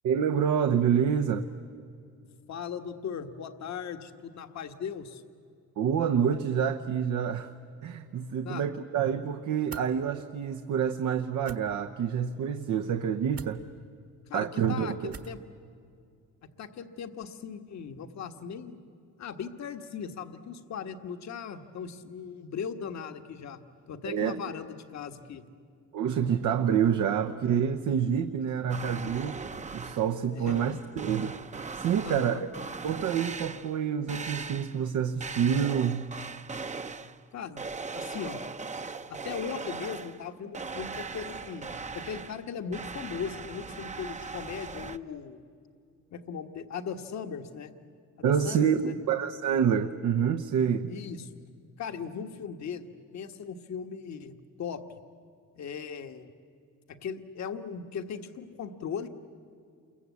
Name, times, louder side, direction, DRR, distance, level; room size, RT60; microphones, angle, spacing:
voice 1, 0.0-1.5 5.8-7.5 7.8-13.6 14.3-15.1 24.0-24.4 25.9-29.4 29.7-31.4 31.7-32.5 32.8-36.1 48.2-50.9, right 8 dB, 75° right, 7 dB, 1.0 m, -27 dB
voice 2, 2.5-5.2 8.4-8.7 14.3-15.4 16.6-18.8 19.2-23.6 23.9-25.4 30.3-30.8 32.0-32.4 37.3-37.6 37.9-38.4 39.1-45.4 46.1-47.7 48.2-49.0 50.9-51.3 51.8-52.9 53.1-55.0 55.6-56.3 56.9-59.1, left 6 dB, 65° left, 7 dB, 1.5 m, -38 dB
sound 1, 9.7-9.9 11.4-11.6 13.3-13.6 15.1-15.4, right 6 dB, 50° right, 1.5 m, -43 dB
sound 2, 28.7-30.2 30.5-33.8 34.1-34.8 35.2-37.2 37.6-40.3 40.5-45.0, right 4 dB, 25° right, 0.8 m, -39 dB
28.5 x 23.0 x 8.3 m, 2.4 s
cardioid pair, 90°, 30 cm